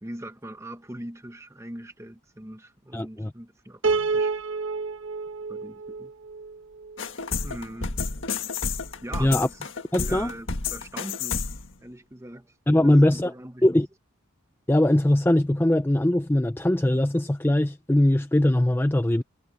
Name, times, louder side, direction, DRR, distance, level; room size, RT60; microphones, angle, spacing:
voice 1, 0.0-4.3 5.5-6.1 7.4-8.0 9.0-9.6 10.0-11.5 11.8-12.5 12.7-13.6, right 1 dB, 15° right, 1.1 m, -41 dB
voice 2, 2.9-3.3 9.2-9.5 9.9-10.3 12.7-13.3 13.6-13.9 14.7-19.2, left 1 dB, 10° left, 0.4 m, -21 dB
Piano, 3.8-7.1, right 4 dB, 70° right, 1.4 m, -29 dB
sound 1, 7.0-11.7, left 5 dB, 65° left, 1.7 m, -31 dB
head